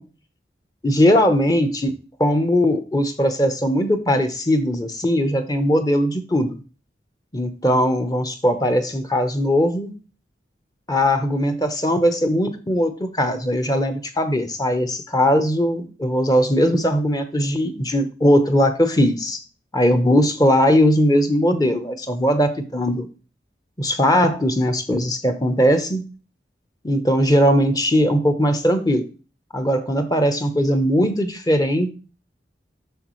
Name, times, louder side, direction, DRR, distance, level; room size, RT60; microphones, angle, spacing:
voice 1, 0.8-1.9 2.2-6.6 7.3-9.9 10.9-19.4 19.7-23.1 23.8-26.1 26.8-29.1 29.5-31.9, equal, 20° left, 9 dB, 0.8 m, -19 dB
7.9 x 6.2 x 3.1 m, 0.34 s
head